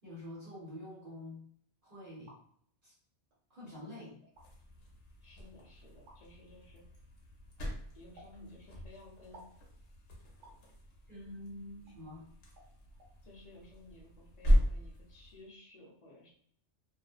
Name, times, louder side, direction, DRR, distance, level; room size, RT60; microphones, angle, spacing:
voice 1, 0.0-1.4 1.8-2.4 2.8-2.9 3.5-4.2 11.1-12.3, left 1 dB, 50° right, -9 dB, 1.1 m, -47 dB
sound 1, 2.3-2.4 3.3-3.4 4.2-4.5 6.1-6.2 8.2-8.4 9.3-9.6 10.4-10.6 11.9-12.0 12.6-12.7 13.0-13.1, right 1 dB, 75° right, 1.0 m, -56 dB
sound 2, 4.3-15.5, equal, 85° left, 1.0 m, -37 dB
voice 2, 5.2-7.0 7.9-9.5 13.2-16.3, left 2 dB, 40° left, -2 dB, 0.6 m, -56 dB
2.5 x 2.1 x 2.3 m, 0.63 s
omnidirectional pair, 1.2 m